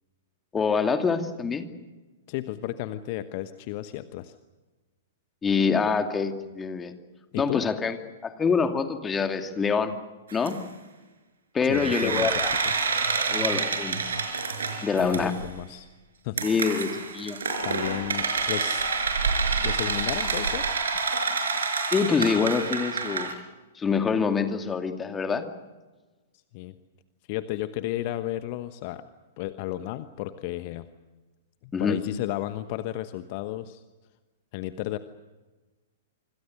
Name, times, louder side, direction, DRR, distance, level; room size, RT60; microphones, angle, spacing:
voice 1, 0.5-1.7 5.4-6.9 7.4-8.0 8.2-10.0 10.3-10.5 11.5-12.5 13.3-14.0 14.8-15.3 16.4-17.4 21.9-23.3 23.8-25.5 31.7-32.0, left 5 dB, 15° left, 6 dB, 2.5 m, -25 dB
voice 2, 2.3-4.4 7.3-7.6 11.6-12.7 15.0-15.9 16.2-16.4 17.6-19.2 19.6-20.7 26.5-26.7 27.3-29.1 29.4-30.9 31.6-33.8 34.5-35.0, left 15 dB, 40° left, 11 dB, 1.1 m, -33 dB
sound 1, 10.3-10.5 11.7-15.5 16.4-23.3, right 4 dB, 65° right, 5.0 m, -28 dB
27.0 x 26.0 x 6.5 m, 1.2 s
figure-of-eight pair, 105°, 0 cm